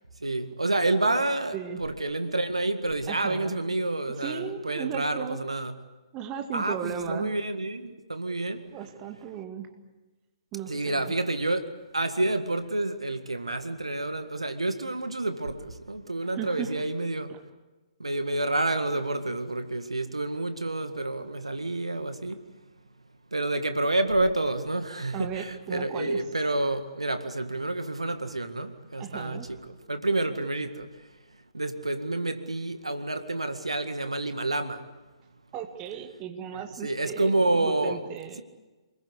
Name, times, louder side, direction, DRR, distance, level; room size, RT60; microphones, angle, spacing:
voice 1, 0.2-5.7 6.5-8.7 10.7-17.3 18.0-22.5 23.3-30.9 31.5-34.8 36.5-38.0, right 2 dB, 80° right, 1.9 m, -29 dB
voice 2, 1.5-1.8 3.1-3.6 4.2-5.5 6.1-7.3 8.7-9.7 10.5-11.2 16.3-16.8 17.3-17.4 25.1-26.2 29.0-29.5 35.5-38.4, right 8 dB, 25° right, 2.2 m, -36 dB
28.5 x 21.5 x 8.3 m
figure-of-eight pair, 125°, 3 cm